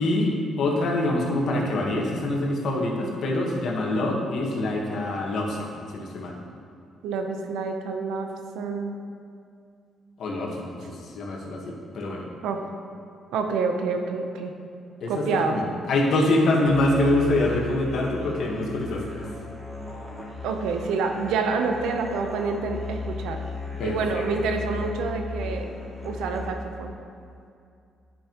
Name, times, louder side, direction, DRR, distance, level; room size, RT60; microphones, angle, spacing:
voice 1, 0.0-6.3 10.2-12.2 15.0-19.3 23.8-24.2, left 1 dB, 70° left, -1 dB, 1.3 m, -25 dB
voice 2, 7.0-8.3 8.5-9.0 12.4-12.6 13.3-14.5 15.1-15.6 20.4-23.4 23.8-25.7 26.0-26.9, right 4 dB, 90° right, 4 dB, 0.7 m, -27 dB
Musical instrument, 16.6-26.8, left 3 dB, 20° right, 1.8 m, -36 dB
10.0 x 5.4 x 3.0 m, 2.4 s
cardioid pair, 90°, 0 cm